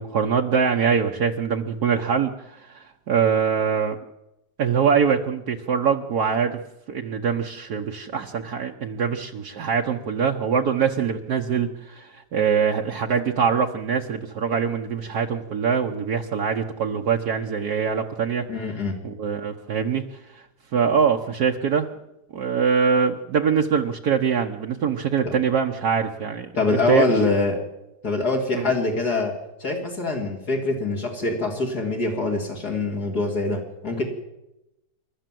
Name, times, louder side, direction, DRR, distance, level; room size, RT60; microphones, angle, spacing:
voice 1, 0.0-4.0 4.6-6.6 6.9-18.4 19.0-20.0 20.3-20.4 20.7-21.9 22.3-27.1 28.5-28.7, right 6 dB, 60° right, 2 dB, 1.5 m, -23 dB
voice 2, 18.5-19.0 26.6-27.6 28.0-29.3 29.6-34.0, left 3 dB, 60° left, 2 dB, 3.5 m, -24 dB
28.5 x 13.0 x 7.7 m, 0.93 s
omnidirectional pair, 1.9 m